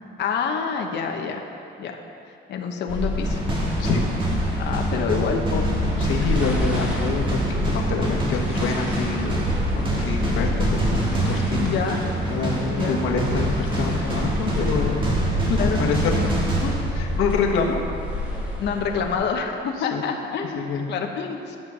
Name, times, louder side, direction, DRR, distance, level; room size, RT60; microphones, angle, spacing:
voice 1, 0.2-1.4 1.8-2.0 2.5-3.4 4.6-5.6 11.6-12.0 12.7-13.0 15.5-15.8 18.6-20.6 20.9-21.6, left 6 dB, 55° left, 3 dB, 1.0 m, -27 dB
sound 1, 2.9-19.1, left 1 dB, 5° right, 1.7 m, -28 dB
sound 2, 3.2-17.4, right 1 dB, 25° right, 1.6 m, -26 dB
voice 2, 6.0-9.4 9.7-11.7 12.3-15.0 15.6-16.3 16.6-17.8 19.8-20.0 20.5-20.8, left 4 dB, 85° left, 0 dB, 1.5 m, -27 dB
11.5 x 7.2 x 6.1 m, 2.5 s
cardioid pair, 175°, 21 cm